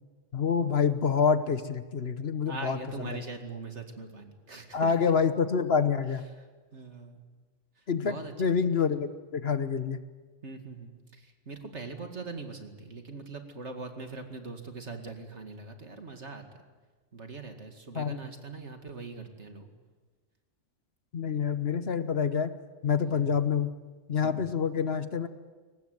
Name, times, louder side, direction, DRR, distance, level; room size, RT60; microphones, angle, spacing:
voice 1, 0.3-2.8 4.7-6.2 7.9-10.0 17.9-18.2 21.1-22.5 22.8-23.7 24.1-25.3, left 6 dB, 55° left, 11 dB, 1.2 m, -27 dB
voice 2, 2.5-4.9 6.3-6.5 6.7-7.3 7.8-8.5 10.4-16.6 17.1-19.7 23.1-23.3 24.2-24.5, right 4 dB, 65° right, 5 dB, 2.6 m, -42 dB
23.0 x 19.5 x 9.4 m, 1.4 s
omnidirectional pair, 1.3 m